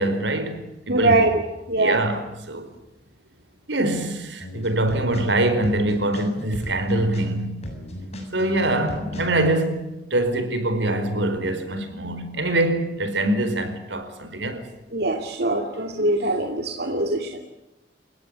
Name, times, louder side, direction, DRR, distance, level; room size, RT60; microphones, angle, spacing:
voice 1, 0.0-1.2 1.8-2.7 3.7-7.7 8.3-14.7, right 1 dB, 85° right, 4.6 m, -24 dB
voice 2, 0.9-1.4 1.7-2.0 14.9-17.4, right 2 dB, 60° right, 2.5 m, -22 dB
sound 1, 4.4-9.5, left 1 dB, 35° left, 7.4 m, -35 dB
29.0 x 17.0 x 9.7 m
head